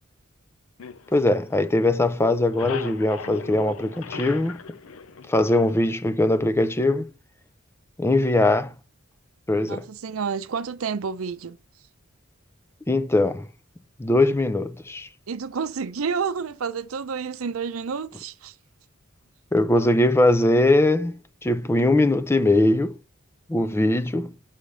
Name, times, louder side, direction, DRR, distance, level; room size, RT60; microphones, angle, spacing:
sound 1, 0.8-1.9 2.2-5.9, left 5 dB, 75° left, 0.6 m, -38 dB
voice 1, 1.1-4.6 5.3-7.1 8.0-8.7 9.5-9.8 12.9-13.4 14.0-15.1 19.5-23.0 23.5-24.3, left 2 dB, 10° left, 0.4 m, -21 dB
voice 2, 9.7-11.6 15.3-18.5, right 5 dB, 80° right, 0.6 m, -30 dB
5.6 x 3.3 x 5.1 m
head